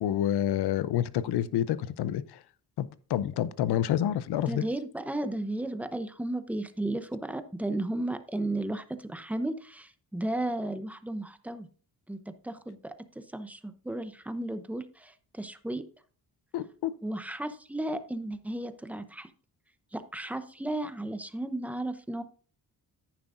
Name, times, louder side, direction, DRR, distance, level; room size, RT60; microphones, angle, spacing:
voice 1, 0.0-2.2 2.8-4.6 16.5-16.9, left 11 dB, 85° left, 16 dB, 0.7 m, -28 dB
voice 2, 4.4-11.7 12.1-15.8 17.0-19.3 19.9-22.2, right 1 dB, 5° right, 11 dB, 0.7 m, -34 dB
10.5 x 9.6 x 2.6 m, 0.42 s
cardioid pair, 115°, 38 cm